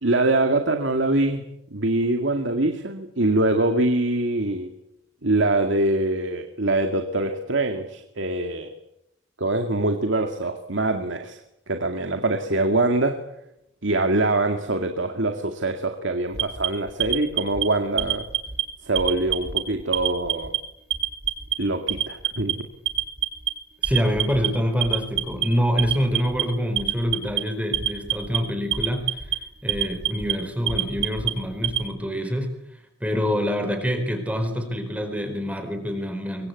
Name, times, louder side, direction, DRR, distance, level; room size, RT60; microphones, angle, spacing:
voice 1, 0.0-1.5 1.7-4.7 5.2-8.7 9.4-11.4 11.7-13.2 13.8-18.3 18.8-20.5 21.6-22.7, right 2 dB, 85° right, 5 dB, 2.2 m, -24 dB
Alarm, 16.3-17.6 18.0-18.6 18.9-19.6 19.9-20.6 20.9-21.5 21.9-22.5 22.9-23.5 23.8-24.5 24.8-25.4 25.8-26.4 26.8-27.4 27.7-28.4 28.7-29.3 29.7-30.3 30.7-31.8, right 11 dB, 55° right, 3.0 m, -25 dB
voice 2, 23.8-29.4 29.6-32.5 33.0-36.5, equal, 5° right, 7 dB, 4.5 m, -26 dB
24.5 x 24.0 x 8.4 m, 0.81 s
head